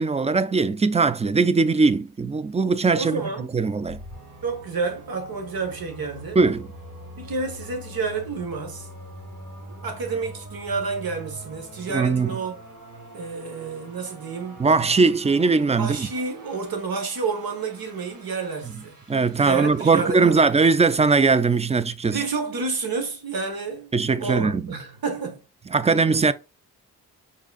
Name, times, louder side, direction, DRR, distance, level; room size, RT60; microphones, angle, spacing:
voice 1, 0.0-3.2 3.5-4.0 6.4-6.7 11.9-12.3 14.6-16.1 19.1-22.2 23.9-24.6 25.7-26.3, right 4 dB, 20° right, 0.4 m, -20 dB
voice 2, 2.9-3.5 4.4-6.4 7.1-8.9 9.8-12.5 13.1-14.6 15.8-19.0 19.4-20.4 22.1-23.9 24.2-25.4 25.8-26.2, right 4 dB, 70° right, 1.4 m, -30 dB
sound 1, 3.9-21.9, right 1 dB, 50° right, 1.8 m, -44 dB
4.9 x 4.1 x 2.4 m
supercardioid pair, 50°, 37 cm